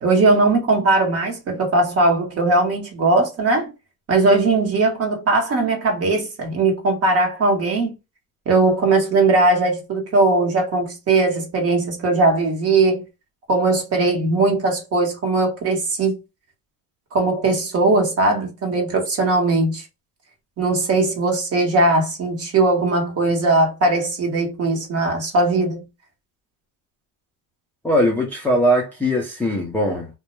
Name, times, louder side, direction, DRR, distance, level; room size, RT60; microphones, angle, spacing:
voice 1, 0.0-3.7 4.1-7.9 8.5-13.0 13.5-16.2 17.1-19.8 20.6-25.8, right 2 dB, 35° right, 1.0 m, -19 dB
voice 2, 27.8-30.1, equal, 5° left, 0.4 m, -20 dB
2.2 x 2.1 x 3.0 m
cardioid pair, 125°, 41 cm